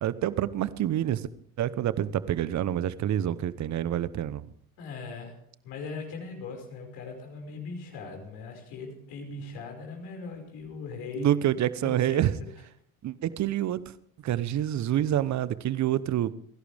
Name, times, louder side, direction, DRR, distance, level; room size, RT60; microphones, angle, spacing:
voice 1, 0.0-1.2 1.6-4.4 11.2-12.3 13.0-13.8 14.2-16.3, right 12 dB, 45° right, 16 dB, 1.0 m, -27 dB
voice 2, 4.8-5.4 5.6-11.4 11.8-12.5, left 4 dB, 65° left, 2 dB, 5.5 m, -39 dB
29.5 x 11.5 x 3.5 m, 0.65 s
supercardioid pair, 85°, 41 cm